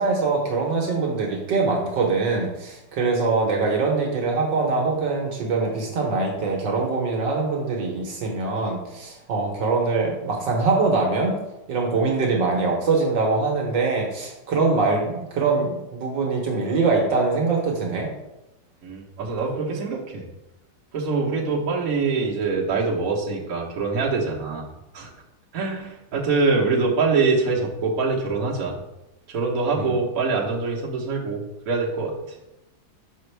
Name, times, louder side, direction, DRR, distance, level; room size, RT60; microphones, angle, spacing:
voice 1, 0.0-11.3 11.7-18.1 29.8-29.9, right 3 dB, 70° right, 0 dB, 1.6 m, -23 dB
voice 2, 18.8-20.3 20.9-24.6 24.9-25.1 25.5-28.8 29.3-32.4, right 4 dB, 50° right, -3 dB, 1.4 m, -24 dB
6.2 x 5.0 x 3.3 m, 0.95 s
omnidirectional pair, 2.1 m